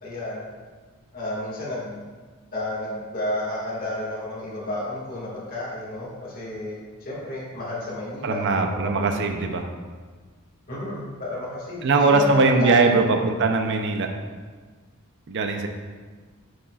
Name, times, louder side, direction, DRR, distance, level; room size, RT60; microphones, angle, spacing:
voice 1, 0.0-0.4 1.1-2.1 2.5-9.5 10.7-13.2, left 1 dB, 40° left, -7 dB, 1.9 m, -31 dB
voice 2, 8.2-9.7 11.8-14.1 15.3-15.7, right 3 dB, 55° right, 5 dB, 0.5 m, -21 dB
7.1 x 6.5 x 2.4 m, 1.5 s
head